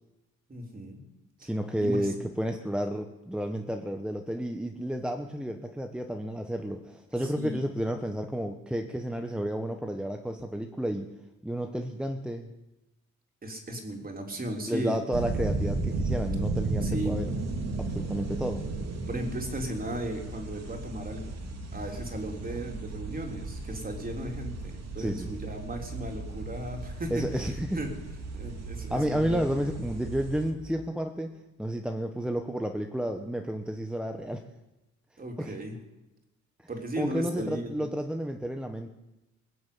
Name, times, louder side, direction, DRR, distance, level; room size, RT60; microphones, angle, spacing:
voice 1, 0.5-1.1 1.4-1.5 1.8-2.1 7.2-7.6 13.4-15.0 16.8-17.2 19.1-21.4 21.7-27.9 28.3-29.6 35.2-35.8 36.7-37.9, right 1 dB, 30° right, 2 dB, 3.7 m, -36 dB
voice 2, 1.4-11.1 11.4-12.5 14.7-17.2 17.8-18.7 25.0-25.4 27.1-27.8 28.9-34.4 35.4-35.5 37.0-38.9, equal, 5° right, 5 dB, 1.2 m, -31 dB
sound 1, 15.1-30.5, right 3 dB, 60° right, 2.8 m, -35 dB
21.5 x 7.8 x 8.6 m, 0.98 s
cardioid pair, 90°, 30 cm